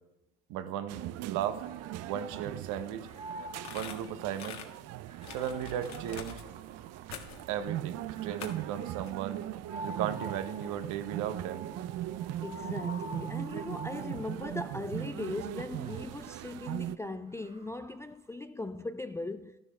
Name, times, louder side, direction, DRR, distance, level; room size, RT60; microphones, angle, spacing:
voice 1, 0.5-1.6 2.0-3.1 3.7-4.6 5.3-6.4 7.5-9.4 9.8-11.7, right 10 dB, 65° right, 1.0 m, -36 dB
sound 1, 0.9-17.0, right 13 dB, 50° right, 0.5 m, -40 dB
sound 2, 1.4-2.6 3.0-7.3 8.0-14.7 15.5-18.1, right 1 dB, 20° right, 1.6 m, -48 dB
sound 3, 3.6-4.7 5.2-6.4 7.1-7.5 8.4-8.7 9.0-9.1, left 7 dB, 55° left, 1.7 m, -45 dB
voice 2, 12.4-19.6, left 2 dB, 10° left, 0.3 m, -39 dB
12.5 x 11.0 x 3.4 m
hypercardioid pair, 80°, 34 cm